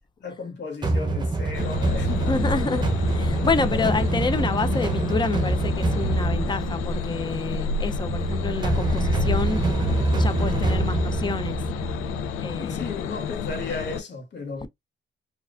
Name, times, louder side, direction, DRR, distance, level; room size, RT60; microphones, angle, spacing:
voice 1, 0.2-2.7 3.6-4.0 12.5-14.7, left 4 dB, 60° left, 1.4 m, -35 dB
sound 1, 0.8-12.7, right 2 dB, 20° right, 0.7 m, -26 dB
sound 2, 1.5-14.0, left 5 dB, 90° left, 0.5 m, -30 dB
voice 2, 2.2-2.8 3.1-9.6 10.2-11.6 12.4-12.9 14.6-14.7, left 4 dB, 20° left, 0.5 m, -28 dB
4.6 x 2.4 x 2.5 m
cardioid pair, 135°, 21 cm